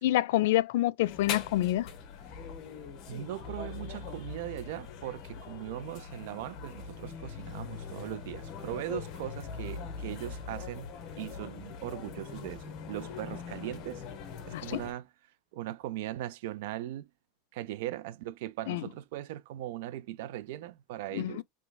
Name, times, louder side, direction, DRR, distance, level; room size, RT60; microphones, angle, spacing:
voice 1, 0.0-1.9 14.5-14.8 18.7-18.8 21.1-21.4, left 15 dB, 75° left, 0.4 m, -27 dB
sound 1, 1.0-14.9, left 6 dB, 40° left, 1.1 m, -42 dB
voice 2, 3.1-10.9 11.2-14.0 14.5-15.1 15.5-17.1 17.5-21.4, right 14 dB, 70° right, 0.4 m, -39 dB
3.3 x 3.1 x 2.2 m
supercardioid pair, 155°, 0 cm